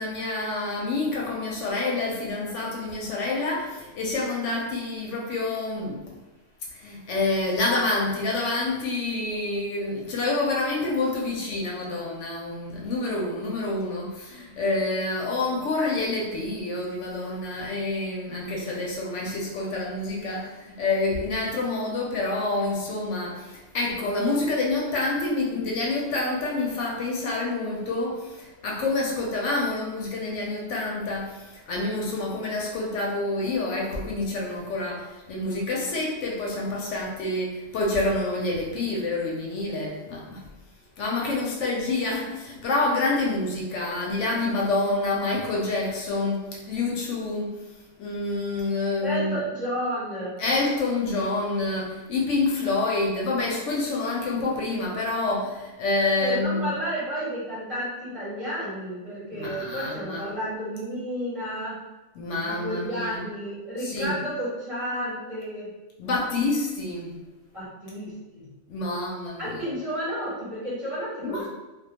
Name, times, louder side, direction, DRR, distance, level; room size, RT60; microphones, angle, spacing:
voice 1, 0.0-6.1 6.7-40.5 41.0-47.6 48.0-49.4 50.4-56.7 59.3-60.3 62.1-63.2 63.8-64.1 66.0-67.1 68.7-69.7 71.2-71.5, left 2 dB, 70° left, -2 dB, 0.8 m, -27 dB
voice 2, 49.0-50.4 56.2-61.8 62.4-65.7 67.5-68.5 69.4-71.5, equal, 35° right, -9 dB, 0.7 m, -31 dB
2.3 x 2.2 x 2.8 m, 1.1 s
omnidirectional pair, 1.4 m